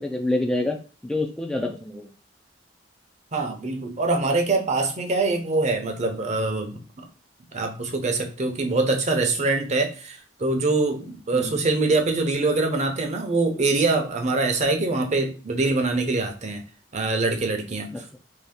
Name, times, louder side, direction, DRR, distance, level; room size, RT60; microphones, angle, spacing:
voice 1, 0.0-2.1 11.3-11.6 17.9-18.0, left 2 dB, 5° left, 2 dB, 0.3 m, -27 dB
voice 2, 3.3-7.0 7.5-16.6 16.9-17.9, right 3 dB, 40° right, 4 dB, 0.7 m, -24 dB
3.0 x 2.7 x 3.4 m, 0.35 s
head